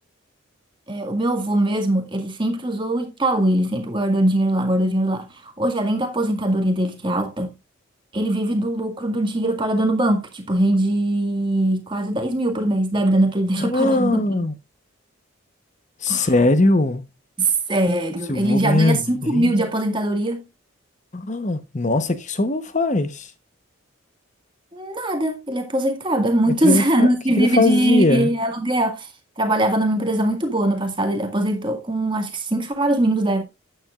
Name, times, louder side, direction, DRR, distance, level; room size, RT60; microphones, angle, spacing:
voice 1, 0.9-7.5 8.1-14.2 16.1-16.3 17.4-20.4 24.7-29.1 29.4-33.4, right 1 dB, 25° right, 1.9 m, -21 dB
voice 2, 13.6-14.5 16.0-17.0 18.3-19.6 21.1-23.3 26.5-27.1 27.4-28.3, left 2 dB, 35° left, 1.0 m, -20 dB
12.5 x 9.0 x 2.4 m
head